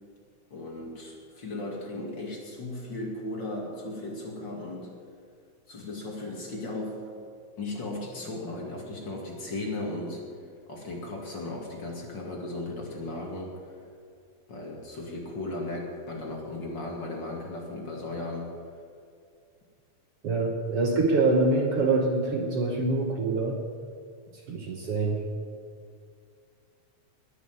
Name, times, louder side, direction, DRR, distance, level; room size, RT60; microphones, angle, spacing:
voice 1, 0.5-4.9 5.7-7.0 7.6-10.2 10.7-13.7 14.5-18.5, left 2 dB, 40° left, -1 dB, 2.7 m, -36 dB
voice 2, 20.2-23.6 24.5-25.2, right 3 dB, 60° right, 3 dB, 1.9 m, -25 dB
20.0 x 6.9 x 9.5 m, 2.3 s
omnidirectional pair, 3.4 m